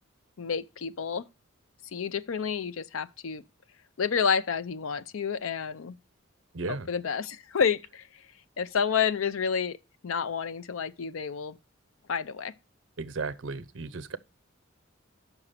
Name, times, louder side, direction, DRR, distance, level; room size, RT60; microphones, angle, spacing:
voice 1, 0.4-1.2 1.9-3.4 4.0-6.0 6.7-8.1 8.6-9.8 10.0-11.6 12.1-12.5, left 6 dB, 90° left, 0.5 m, -29 dB
voice 2, 6.5-6.9 13.0-14.2, right 3 dB, 65° right, 0.6 m, -35 dB
7.0 x 6.0 x 6.6 m
head